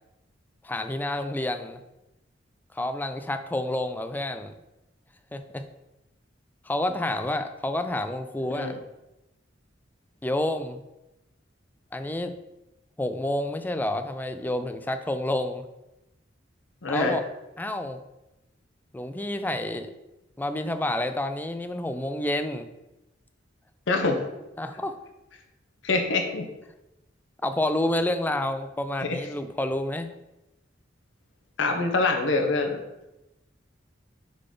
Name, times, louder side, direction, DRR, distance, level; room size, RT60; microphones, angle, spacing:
voice 1, 0.6-1.8 2.7-4.5 5.3-5.6 6.7-8.7 10.2-10.8 11.9-12.3 13.0-15.6 16.9-17.2 17.6-18.0 18.9-19.9 20.4-22.7 24.6-25.0 27.4-30.1, left 1 dB, 10° left, 9 dB, 0.3 m, -29 dB
voice 2, 16.8-17.1 23.9-24.2 25.8-26.4 29.0-29.2 31.6-32.8, left 3 dB, 85° left, 4 dB, 0.9 m, -25 dB
6.5 x 3.9 x 3.8 m, 0.96 s
head